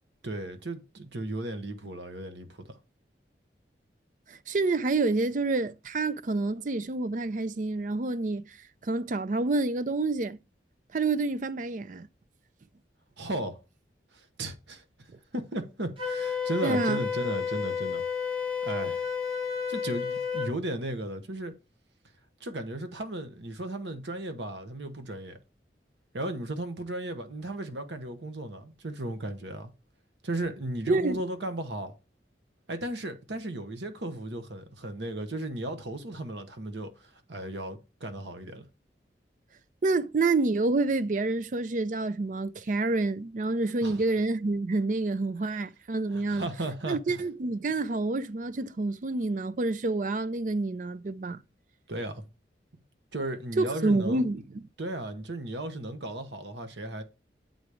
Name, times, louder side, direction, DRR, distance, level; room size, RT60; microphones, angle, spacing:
voice 1, 0.2-2.8 13.2-13.6 14.1-15.1 15.3-18.0 18.6-19.1 19.7-21.5 22.4-25.4 26.1-29.7 30.2-31.9 32.7-38.7 43.8-44.0 46.1-47.2 51.9-52.2 53.1-54.2 54.8-57.0, right 1 dB, 80° right, 1.0 m, -35 dB
voice 2, 4.3-8.4 8.8-10.4 10.9-12.1 16.6-17.0 30.9-31.2 39.8-46.5 46.9-51.4 53.6-54.6, right 3 dB, 45° right, 0.4 m, -28 dB
Wind instrument woodwind instrument, 16.0-20.5, left 6 dB, 30° right, 1.6 m, -31 dB
8.4 x 4.0 x 4.8 m
head